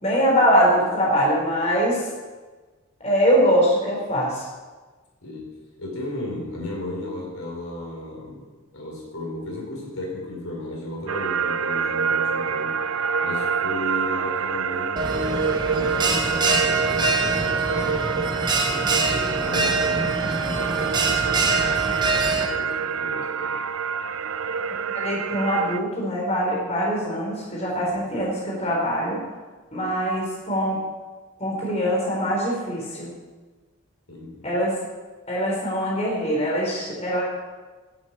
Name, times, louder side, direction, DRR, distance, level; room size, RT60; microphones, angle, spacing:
voice 1, 0.0-2.1 3.0-4.5 24.9-29.2 29.7-30.8 31.4-33.1 34.4-34.7 35.3-37.2, equal, 30° left, -4 dB, 4.2 m, -23 dB
voice 2, 5.2-8.5 8.7-12.8 13.2-18.1 18.6-23.6 27.7-28.2 34.1-34.6, left 1 dB, 75° left, -1 dB, 4.4 m, -35 dB
sound 1, 11.1-25.8, right 6 dB, 80° right, 0.5 m, -26 dB
Bell, 15.0-22.5, right 3 dB, 20° right, 1.2 m, -24 dB
11.5 x 8.2 x 8.7 m, 1.3 s
head